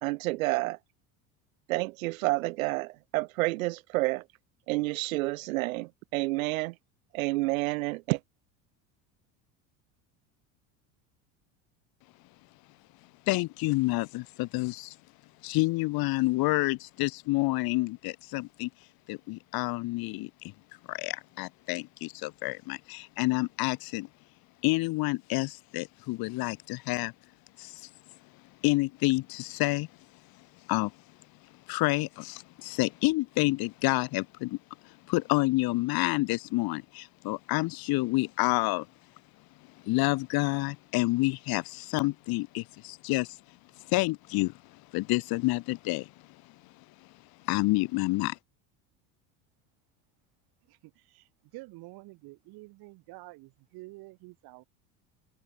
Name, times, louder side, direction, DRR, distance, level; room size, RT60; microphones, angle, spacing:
voice 1, 0.0-0.8 1.7-4.2 4.7-6.7 7.1-8.2, right 21 dB, 85° right, 1.5 m, -29 dB
voice 2, 13.3-15.0 15.4-18.7 19.1-20.5 20.9-24.1 24.6-27.1 27.6-27.9 28.6-29.9 30.7-30.9 31.7-34.6 34.8-38.9 39.8-46.1 46.4-46.5 47.4-48.4, left 21 dB, 60° left, 2.3 m, -29 dB
voice 3, 51.5-54.6, right 22 dB, 65° right, 4.6 m, -48 dB
supercardioid pair, 100°, 40 cm